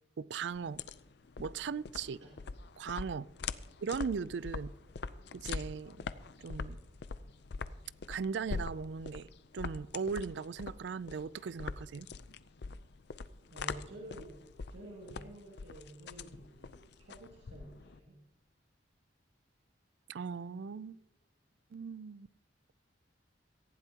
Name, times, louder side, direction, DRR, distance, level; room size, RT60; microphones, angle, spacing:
voice 1, 0.2-0.8 1.4-2.2 2.8-3.3 3.8-4.7 5.3-6.1 6.4-6.8 8.1-9.3 9.5-12.1 20.1-21.0 21.7-22.3, right 5 dB, 70° right, 0.4 m, -38 dB
sound 1, 0.5-18.0, left 4 dB, 65° left, 0.5 m, -43 dB
voice 2, 13.5-14.4 14.7-18.2, right 1 dB, 90° right, 2.1 m, -50 dB
18.0 x 15.5 x 2.9 m
head